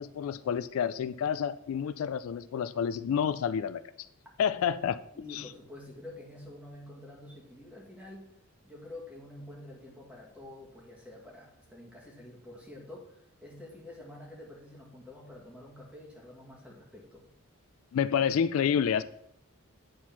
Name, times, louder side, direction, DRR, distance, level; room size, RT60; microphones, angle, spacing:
voice 1, 0.0-4.1 4.4-5.0 5.3-5.4 17.9-19.0, left 7 dB, 70° left, 14 dB, 0.3 m, -29 dB
voice 2, 5.1-8.3 8.6-17.3, left 1 dB, 5° right, -3 dB, 1.9 m, -48 dB
9.2 x 4.3 x 5.9 m, 0.77 s
head